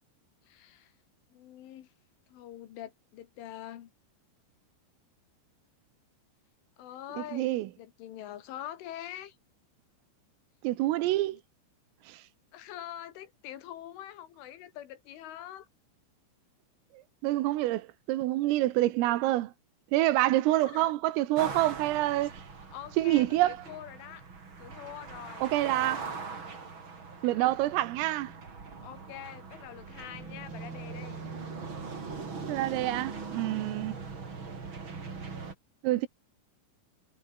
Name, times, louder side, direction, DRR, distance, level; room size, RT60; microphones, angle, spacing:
voice 1, 0.4-0.9 1.3-1.9 2.3-3.9 6.8-9.4 11.3-11.4 12.5-15.7 20.5-20.9 21.6-21.7 22.3-22.4 22.7-24.3 24.6-26.1 27.3-27.5 28.8-31.2, left 12 dB, 70° left, 4.2 m, -45 dB
voice 2, 7.2-7.7 10.6-11.4 12.1-12.2 17.2-19.5 19.9-22.3 23.0-23.6 25.4-26.0 27.2-28.3 32.5-34.0 35.8-36.1, right 16 dB, 80° right, 3.9 m, -27 dB
sound 1, 21.3-35.5, right 4 dB, 30° right, 3.4 m, -41 dB
omnidirectional pair, 5.9 m